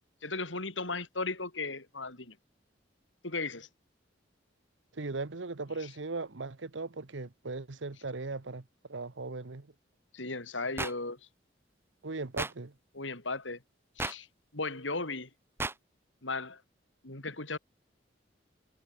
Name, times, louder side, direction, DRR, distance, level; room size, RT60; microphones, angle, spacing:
voice 1, 0.2-2.3 3.2-3.7 5.8-5.9 10.1-11.2 12.9-13.6 14.0-14.3 14.5-15.3 16.2-16.6 17.0-17.6, left 3 dB, 90° left, 5.1 m, -36 dB
voice 2, 4.9-9.7 12.0-12.7, right 3 dB, 80° right, 1.1 m, -38 dB
sound 1, 10.8-10.9 12.4-12.5 14.0-14.1 15.6-15.7, right 2 dB, 15° right, 2.3 m, -33 dB
head